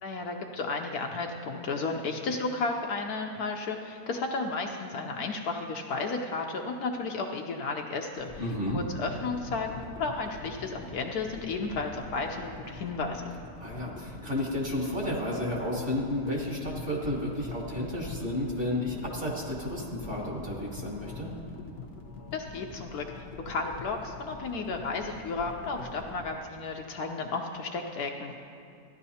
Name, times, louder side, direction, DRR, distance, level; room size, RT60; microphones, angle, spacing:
voice 1, 0.0-13.3 22.3-28.4, left 3 dB, 70° left, 2 dB, 1.0 m, -33 dB
sound 1, 8.1-26.3, left 3 dB, 50° left, 0.8 m, -44 dB
voice 2, 8.4-8.8 13.6-21.3, left 1 dB, 35° right, -3 dB, 1.5 m, -32 dB
14.5 x 10.5 x 2.8 m, 2.7 s
omnidirectional pair, 1.9 m